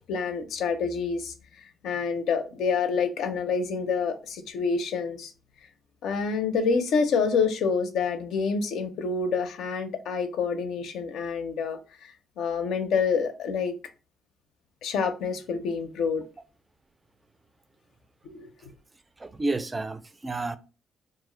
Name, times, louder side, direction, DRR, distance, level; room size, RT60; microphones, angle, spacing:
voice 1, 0.1-5.3 6.0-13.7 14.8-16.2 18.2-18.7, left 5 dB, 80° left, 0.5 m, -27 dB
voice 2, 19.2-20.6, right 2 dB, 20° right, 0.3 m, -30 dB
2.4 x 2.0 x 3.7 m
cardioid pair, 90°, 0 cm